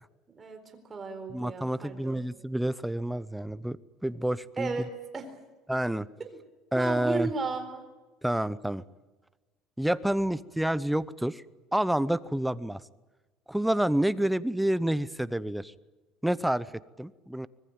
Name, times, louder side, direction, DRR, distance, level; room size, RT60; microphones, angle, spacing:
voice 1, 0.3-2.2 4.6-5.4 6.2-6.3 6.7-7.8, right 4 dB, 20° right, 7 dB, 4.2 m, -35 dB
voice 2, 1.3-3.8 4.0-4.9 5.7-6.1 6.7-7.3 8.2-8.8 9.8-11.4 11.7-12.8 13.5-15.7 16.2-16.7 17.0-17.5, right 1 dB, 5° right, 16 dB, 0.8 m, -28 dB
25.0 x 20.5 x 8.8 m, 1.2 s
cardioid pair, 140°, 0 cm